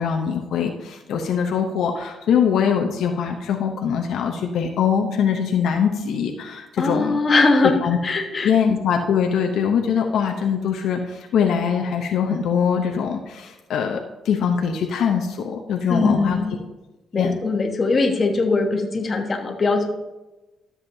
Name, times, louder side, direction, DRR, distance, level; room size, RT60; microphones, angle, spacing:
voice 1, 0.0-7.2 7.6-8.0 8.3-16.4 17.2-17.4, left 7 dB, 75° left, 3 dB, 0.7 m, -22 dB
voice 2, 6.8-7.8 8.0-8.5 15.9-16.5 17.1-19.9, left 3 dB, 35° left, 3 dB, 1.2 m, -20 dB
13.0 x 7.2 x 2.7 m, 1.1 s
cardioid pair, 90°, 0 cm